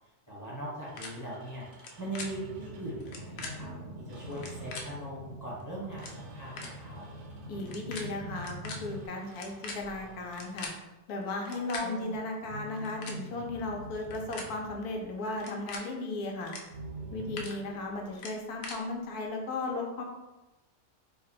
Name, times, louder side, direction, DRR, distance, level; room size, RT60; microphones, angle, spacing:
voice 1, 0.3-1.7 2.0-7.0 11.5-12.2, right 1 dB, 15° left, -7 dB, 0.8 m, -41 dB
sound 1, 0.8-3.1 4.1-5.1 6.0-7.9 8.9-10.8 12.4-15.6 16.6-18.1, right 2 dB, 65° right, 0.8 m, -48 dB
sound 2, 1.0-1.1 1.7-2.3 3.0-3.5 4.3-4.8 5.6-5.7 5.9-6.1 6.6-6.7 7.6-8.0 8.3-8.8 9.3-10.7 11.4-11.8 12.7-13.2 14.0-14.5 15.3-15.8 16.4-16.6 17.0-17.5 18.2-18.8, left 4 dB, 70° left, 1.0 m, -41 dB
sound 3, 2.0-9.1, equal, 90° right, 1.2 m, -44 dB
voice 2, 7.5-10.7 11.1-16.5 17.1-20.0, left 2 dB, 90° left, 1 dB, 1.2 m, -36 dB
3.3 x 2.2 x 4.0 m, 1.0 s
omnidirectional pair, 1.6 m